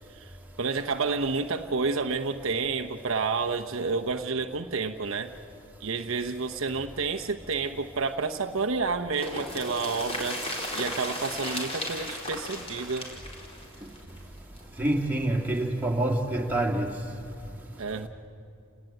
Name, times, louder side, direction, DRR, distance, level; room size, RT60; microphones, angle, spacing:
voice 1, 0.1-5.3 5.8-13.1 17.8-18.1, right 4 dB, 65° right, 0.9 m, -30 dB
sound 1, 9.1-14.9 15.2-15.3 15.5-15.6, left 1 dB, 30° left, 4.5 m, -35 dB
voice 2, 14.8-16.9, right 1 dB, 10° right, 2.6 m, -26 dB
29.5 x 19.0 x 9.0 m
head